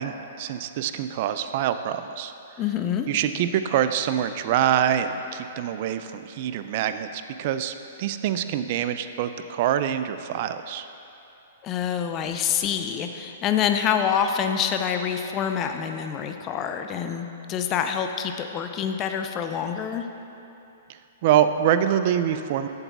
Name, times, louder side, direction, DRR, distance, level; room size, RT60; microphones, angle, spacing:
voice 1, 0.0-2.3 3.1-10.9 21.2-22.7, right 10 dB, 50° right, 10 dB, 0.3 m, -25 dB
voice 2, 2.6-3.1 11.6-20.1, left 8 dB, 30° left, 6 dB, 0.5 m, -26 dB
7.9 x 7.1 x 3.5 m, 2.9 s
hypercardioid pair, 135°, 0 cm